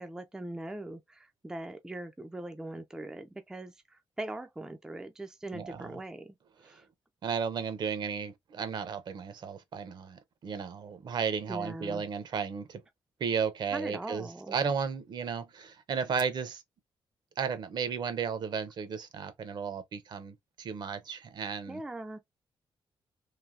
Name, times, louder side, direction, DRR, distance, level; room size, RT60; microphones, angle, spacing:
voice 1, 0.0-6.9 11.5-12.0 13.7-14.6 21.7-22.2, right 1 dB, 5° right, 0.3 m, -41 dB
voice 2, 5.5-6.0 7.2-12.8 13.2-16.6 17.4-21.8, right 6 dB, 50° right, 0.6 m, -34 dB
3.3 x 2.6 x 2.4 m
wide cardioid pair, 165°, 9 cm